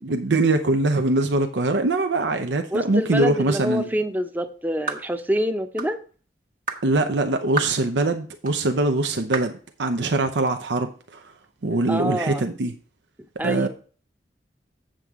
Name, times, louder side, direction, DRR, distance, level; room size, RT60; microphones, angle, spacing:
voice 1, 0.0-3.9 6.8-9.5 9.8-11.3 11.6-12.7 13.4-13.7, right 2 dB, 85° right, 0.7 m, -22 dB
voice 2, 2.7-6.0 11.9-12.5 13.4-13.7, equal, 10° right, 0.7 m, -26 dB
sound 1, 4.9-5.1 5.8-6.0 6.7-6.9 7.6-7.8 8.4-8.6 9.3-9.6, right 3 dB, 50° right, 1.2 m, -29 dB
8.0 x 7.6 x 3.6 m
head